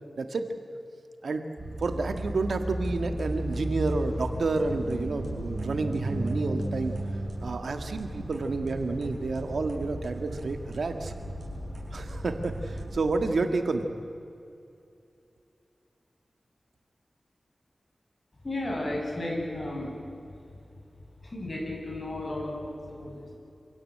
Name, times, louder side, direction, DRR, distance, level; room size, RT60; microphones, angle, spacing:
voice 1, 0.2-0.5 1.2-1.4 1.8-6.9 7.4-11.1 11.9-13.9, right 3 dB, 90° right, 7 dB, 1.8 m, -30 dB
sound 1, 1.6-13.1, right 1 dB, 45° right, 7.1 m, -35 dB
voice 2, 18.4-19.9 20.4-20.5 21.2-23.4, left 1 dB, 35° left, -2 dB, 7.8 m, -34 dB
26.5 x 17.0 x 8.7 m, 2.6 s
wide cardioid pair, 90°, 0 cm